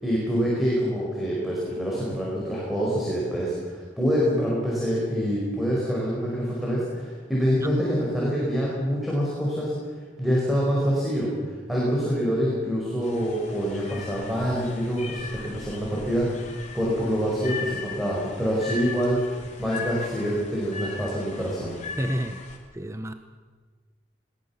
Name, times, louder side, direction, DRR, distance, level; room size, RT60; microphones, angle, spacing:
voice 1, 0.0-9.7 10.2-21.8, equal, ahead, -5 dB, 5.0 m, -26 dB
sound 1, 13.0-22.6, left 4 dB, 40° left, 3.3 m, -39 dB
voice 2, 22.0-22.4 22.7-23.1, equal, 15° right, 8 dB, 0.8 m, -29 dB
21.5 x 18.5 x 7.2 m, 1.5 s
head